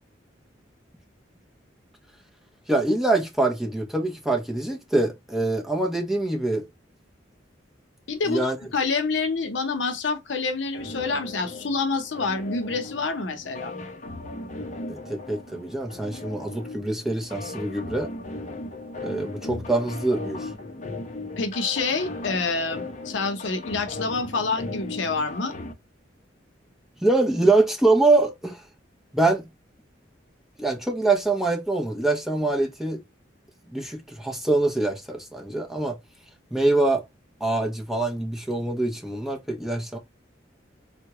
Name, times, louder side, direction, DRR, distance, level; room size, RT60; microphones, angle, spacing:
voice 1, 2.7-6.7 8.3-8.6 14.9-18.1 19.0-20.5 27.0-28.6 29.1-29.5 30.6-33.0 33.7-36.0 36.5-37.1 37.4-40.0, right 2 dB, ahead, 0.7 m, -24 dB
voice 2, 8.1-13.7 21.4-25.5, left 4 dB, 70° left, 0.7 m, -27 dB
sound 1, 10.7-25.7, left 2 dB, 40° left, 0.6 m, -37 dB
3.6 x 2.2 x 2.9 m
head